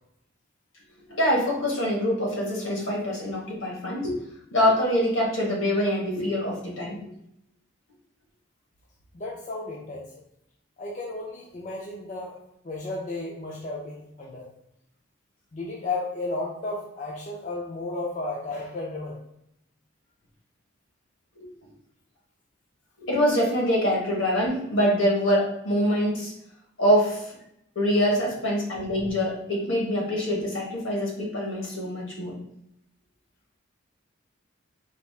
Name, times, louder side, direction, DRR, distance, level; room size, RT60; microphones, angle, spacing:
voice 1, 1.1-4.2 4.5-7.0 21.4-21.5 23.0-26.3 26.8-27.3 27.7-32.4, equal, 80° left, -2 dB, 1.4 m, -24 dB
voice 2, 9.1-10.1 10.8-12.3 12.6-14.5 15.5-19.2 28.0-28.1, left 2 dB, 35° left, -3 dB, 0.5 m, -33 dB
4.0 x 2.4 x 3.5 m, 0.77 s
head